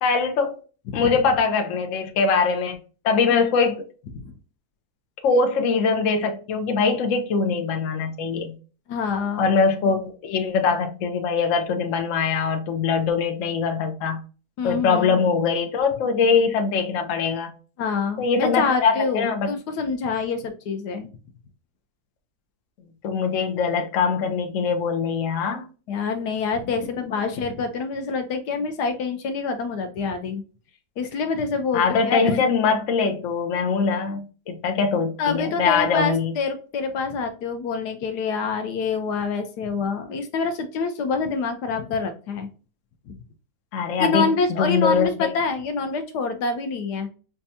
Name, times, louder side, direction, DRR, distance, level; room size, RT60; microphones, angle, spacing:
voice 1, 0.0-0.6 0.9-2.8 3.0-3.9 5.2-8.6 9.4-14.2 14.6-17.5 18.2-19.5 23.0-25.7 31.7-36.4 43.7-45.3, left 5 dB, 60° left, 1.0 m, -22 dB
voice 2, 8.9-9.5 14.6-15.2 17.8-21.1 25.9-30.4 31.0-32.4 35.2-42.5 43.1-43.2 44.0-47.1, left 4 dB, 85° left, 1.3 m, -26 dB
5.2 x 2.3 x 2.7 m
omnidirectional pair, 1.7 m